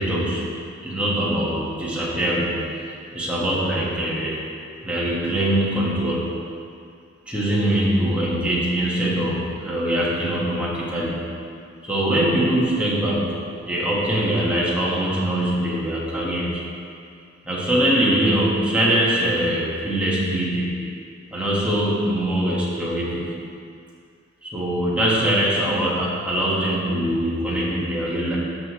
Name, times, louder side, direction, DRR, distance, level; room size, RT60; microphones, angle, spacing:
voice 1, 0.0-2.8 3.1-4.4 4.8-6.4 7.3-11.2 11.8-16.6 17.4-20.8 21.3-23.3 24.4-28.4, right 1 dB, 5° right, -7 dB, 1.6 m, -23 dB
13.0 x 5.8 x 3.2 m, 2.3 s
head